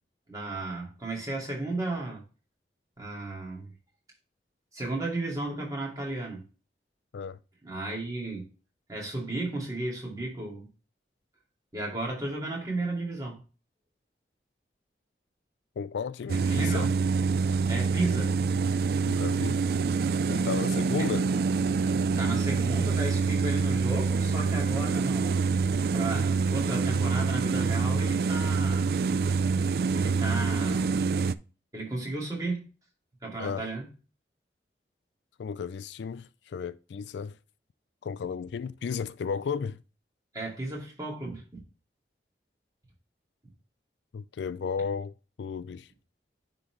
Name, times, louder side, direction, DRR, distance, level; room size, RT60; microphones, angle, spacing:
voice 1, 0.3-2.2 3.0-3.7 4.7-6.4 7.6-8.5 8.9-10.7 11.7-13.4 16.3-16.9 17.7-18.4 21.0-21.1 22.2-25.4 25.9-29.0 29.9-30.9 31.7-32.7 33.2-33.8 40.3-41.6, right 2 dB, 20° right, 2.4 m, -34 dB
voice 2, 15.8-16.9 19.1-19.6 20.3-21.3 33.4-33.7 35.4-37.4 38.0-39.8 44.1-45.1 45.4-45.9, left 6 dB, 80° left, 0.3 m, -34 dB
sound 1, 16.3-31.4, right 4 dB, 55° right, 0.3 m, -26 dB
9.6 x 3.9 x 3.1 m
head